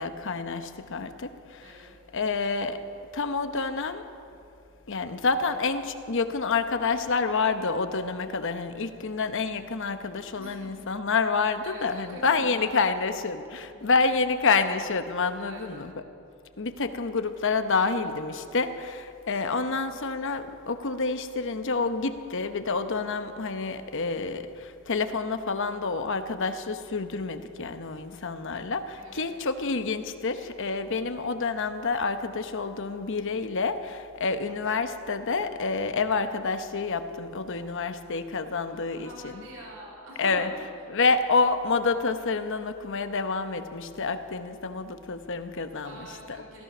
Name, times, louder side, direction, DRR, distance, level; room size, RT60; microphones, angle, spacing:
voice 1, 0.0-2.9 3.1-4.1 4.9-16.0 16.6-39.4 40.2-40.5 40.9-46.4, left 4 dB, 60° left, 9 dB, 0.9 m, -28 dB
voice 2, 1.6-1.9 10.4-10.7 11.6-12.7 13.7-13.9 15.4-15.9 29.0-29.3 38.7-40.5 45.8-46.6, right 1 dB, 65° right, -3 dB, 3.4 m, -45 dB
16.5 x 14.0 x 6.1 m, 2.6 s
head